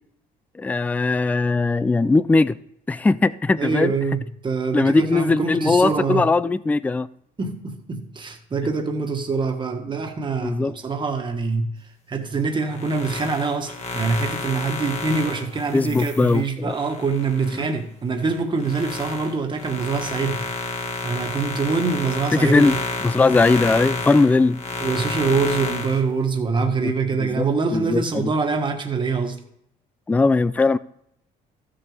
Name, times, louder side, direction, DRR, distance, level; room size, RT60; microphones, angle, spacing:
voice 1, 0.6-2.6 2.9-3.9 4.7-7.1 10.4-10.7 15.7-16.7 22.3-22.8 23.0-24.6 26.8-26.9 27.2-27.5 27.7-28.3 30.1-30.8, left 3 dB, 10° left, 0.3 m, -19 dB
voice 2, 3.6-6.3 7.4-11.7 12.1-20.5 21.0-22.8 24.8-29.4, right 4 dB, 30° right, 1.6 m, -24 dB
sound 1, 12.6-17.7 18.2-26.0, left 3 dB, 40° left, 1.9 m, -30 dB
14.5 x 6.9 x 3.4 m
cardioid pair, 110°, 17 cm